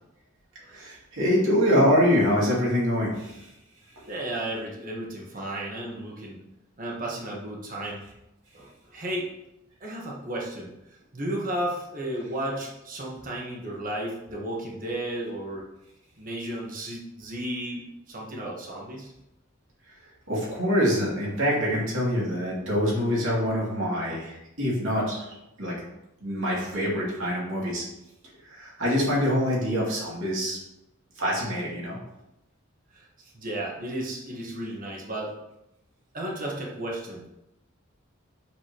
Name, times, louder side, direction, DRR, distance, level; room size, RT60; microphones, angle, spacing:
voice 1, 0.7-3.5 20.3-25.7 26.2-27.8 28.5-30.6 31.2-32.0, equal, 65° right, -5 dB, 2.6 m, -25 dB
voice 2, 4.1-6.4 6.8-8.0 8.5-9.3 9.8-10.7 11.1-15.6 16.2-19.1 32.9-33.0 33.3-35.3 36.1-37.3, right 1 dB, 40° right, -2 dB, 1.3 m, -33 dB
7.4 x 6.5 x 3.0 m, 0.88 s
head